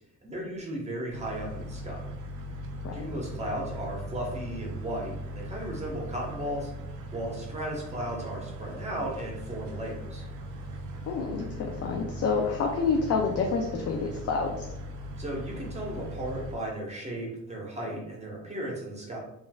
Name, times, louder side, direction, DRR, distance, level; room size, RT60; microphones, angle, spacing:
voice 1, 0.2-2.0 2.9-6.7 7.1-10.3 15.2-19.2, right 1 dB, 20° right, -2 dB, 0.9 m, -35 dB
sound 1, 1.1-16.6, equal, 80° right, 0.5 m, -39 dB
voice 2, 11.1-14.7, left 5 dB, 55° left, 2 dB, 0.4 m, -28 dB
3.0 x 2.5 x 2.2 m, 0.86 s
cardioid pair, 90°, 30 cm